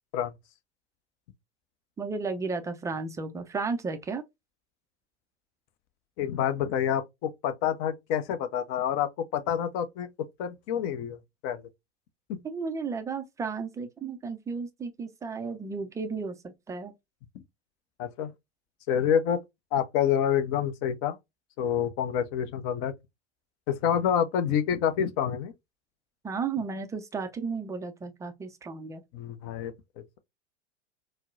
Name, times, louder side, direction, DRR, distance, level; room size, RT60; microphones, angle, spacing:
voice 1, 2.0-4.2 12.4-16.9 26.2-29.0, right 4 dB, 10° right, 0.3 m, -34 dB
voice 2, 6.2-10.1 10.4-11.2 11.4-11.6 12.3-12.4 17.3-17.4 18.0-18.3 18.9-19.4 19.7-21.2 21.6-22.9 23.7-25.5 29.1-29.7, left 9 dB, 40° left, 0.7 m, -27 dB
4.2 x 2.0 x 2.3 m
figure-of-eight pair, 90°, 35 cm